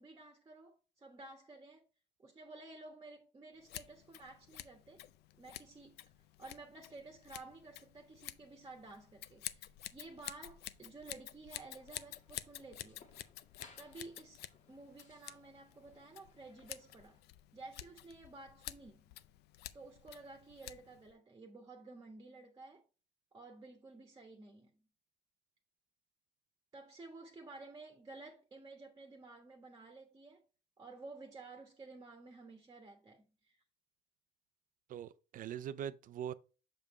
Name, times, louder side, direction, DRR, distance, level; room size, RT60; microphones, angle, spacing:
voice 1, 0.0-1.9 2.2-5.0 5.4-6.0 6.4-13.1 13.8-14.4 14.7-17.2 17.5-19.1 19.7-22.8 23.3-24.8 26.7-30.4 30.8-33.6, right 3 dB, 20° right, 1.2 m, -53 dB
Scissors, 3.6-21.1, left 14 dB, 75° left, 0.5 m, -51 dB
sound 1, 11.8-17.2, left 4 dB, 45° left, 1.6 m, -65 dB
voice 2, 34.9-36.3, right 9 dB, 55° right, 0.5 m, -42 dB
6.9 x 5.2 x 3.1 m
cardioid pair, 110°, 17 cm